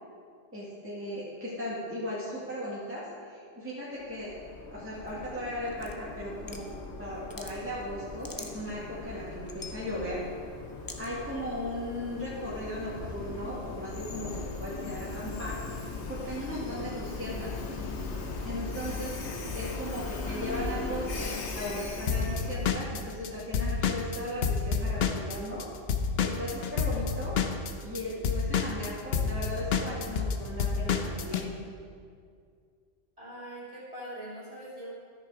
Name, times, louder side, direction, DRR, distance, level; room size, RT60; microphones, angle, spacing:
voice 1, 0.5-4.3 4.7-6.6 7.0-10.2 11.0-15.6 16.1-17.6 18.4-19.2 19.5-25.6 26.2-27.4 27.8-31.5, left 1 dB, 10° right, -8 dB, 1.8 m, -37 dB
Train, 4.0-22.8, left 3 dB, 85° left, 1.3 m, -38 dB
sound 1, 5.7-6.7 7.1-7.5 8.0-8.8 9.3-9.8 10.9-11.1, left 2 dB, 20° left, 0.7 m, -43 dB
Drum kit / Drum, 22.1-25.6 25.9-31.4, left 6 dB, 65° left, 0.9 m, -29 dB
voice 2, 33.2-34.9, right 1 dB, 35° right, -7 dB, 2.8 m, -42 dB
13.5 x 6.8 x 4.8 m, 2.2 s
omnidirectional pair, 1.1 m